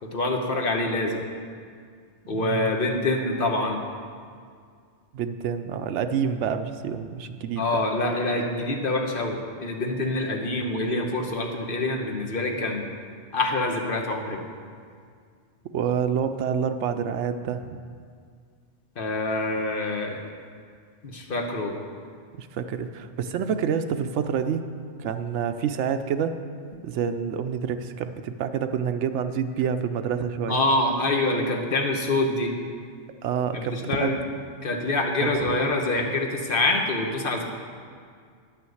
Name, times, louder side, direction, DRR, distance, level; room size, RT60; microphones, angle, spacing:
voice 1, 0.0-1.2 2.3-3.8 7.6-12.9 13.3-14.4 19.0-20.2 21.0-21.8 30.5-32.5 33.5-34.2 34.6-37.4, left 2 dB, 50° left, 2 dB, 1.2 m, -26 dB
voice 2, 2.3-2.7 5.1-7.6 15.7-17.8 22.3-24.6 25.0-26.4 26.8-30.6 33.2-34.2 35.2-35.6, right 7 dB, 80° right, 8 dB, 0.9 m, -28 dB
10.5 x 5.8 x 7.8 m, 2.1 s
omnidirectional pair, 1.2 m